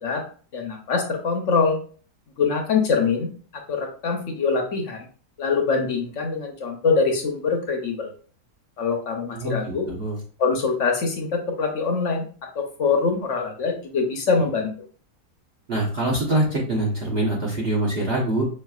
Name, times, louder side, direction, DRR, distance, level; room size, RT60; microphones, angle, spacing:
voice 1, 0.5-1.8 2.4-5.0 5.4-8.1 8.8-9.9 10.4-12.2 12.8-14.7, left 4 dB, 55° left, 2 dB, 0.9 m, -24 dB
voice 2, 9.3-10.2 15.7-18.4, right 1 dB, 45° right, -2 dB, 1.0 m, -24 dB
5.1 x 3.2 x 2.3 m, 0.42 s
omnidirectional pair, 1.8 m